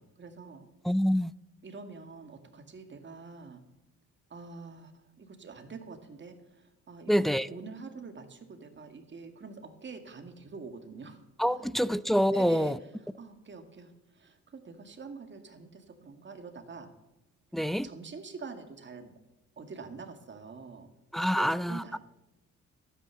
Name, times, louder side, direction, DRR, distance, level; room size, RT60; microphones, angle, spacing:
voice 1, 0.0-0.7 1.6-3.6 4.3-11.7 12.3-12.9 13.2-16.9 17.6-19.1 19.6-20.9 21.2-22.0, right 4 dB, 40° right, 6 dB, 2.1 m, -46 dB
voice 2, 0.8-1.3 7.1-7.5 11.4-12.8 17.5-17.9 21.1-22.0, equal, ahead, 17 dB, 0.4 m, -26 dB
12.5 x 9.1 x 7.0 m, 0.94 s
cardioid pair, 90°, 30 cm